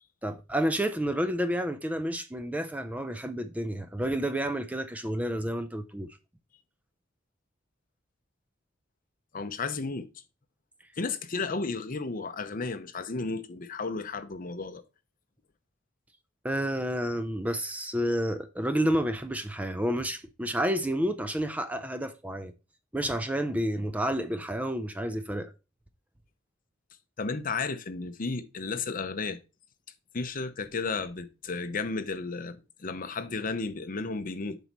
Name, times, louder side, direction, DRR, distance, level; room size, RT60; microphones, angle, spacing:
voice 1, 0.2-6.1 16.4-22.5 22.9-25.5, equal, 10° right, 0.5 m, -30 dB
voice 2, 9.3-10.1 11.0-14.8 27.2-29.4 30.1-34.6, left 4 dB, 45° left, 0.8 m, -33 dB
7.8 x 5.2 x 3.0 m
head